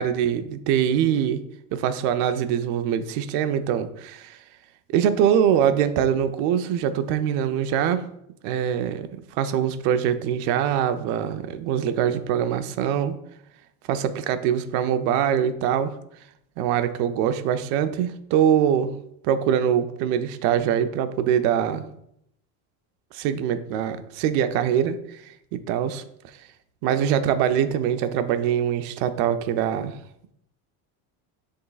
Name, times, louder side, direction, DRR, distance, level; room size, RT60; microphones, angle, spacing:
voice 1, 0.0-1.4 1.7-4.4 4.9-8.0 8.4-13.1 13.9-15.9 16.6-18.9 19.2-21.9 23.1-25.2 25.5-26.0 26.8-30.0, right 9 dB, 65° right, 10 dB, 0.7 m, -23 dB
10.5 x 3.8 x 2.4 m, 0.76 s
cardioid pair, 140°, 43 cm